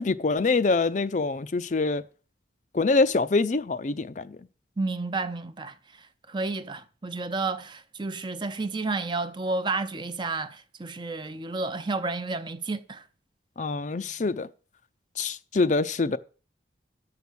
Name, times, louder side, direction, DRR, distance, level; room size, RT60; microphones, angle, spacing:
voice 1, 0.0-2.0 2.7-4.4 13.6-14.5 15.2-16.2, left 3 dB, 40° left, 0.5 m, -25 dB
voice 2, 4.8-13.0, right 3 dB, 25° right, 0.6 m, -31 dB
11.0 x 7.0 x 6.2 m
head